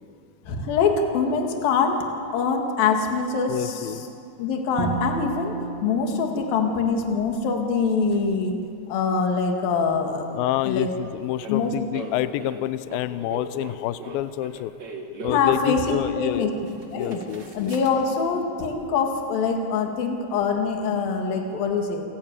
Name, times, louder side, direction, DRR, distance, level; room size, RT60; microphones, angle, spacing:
voice 1, 0.5-2.1 2.3-3.9 4.4-5.5 5.8-8.6 8.9-10.4 10.7-10.9 11.5-11.7 15.3-16.5 16.9-17.3 17.6-22.0, left 5 dB, 60° left, 3 dB, 3.5 m, -24 dB
voice 2, 3.5-4.1 10.3-14.7 15.2-16.5 16.9-17.8, left 14 dB, 85° left, 13 dB, 2.1 m, -28 dB
Bowed string instrument, 4.8-7.9, right 5 dB, 40° right, 2.8 m, -34 dB
sound 1, 8.1-8.2 11.4-15.6 16.3-16.4 16.6-18.1, right 2 dB, 85° right, 0.9 m, -38 dB
28.5 x 15.0 x 9.0 m, 2.5 s
omnidirectional pair, 5.0 m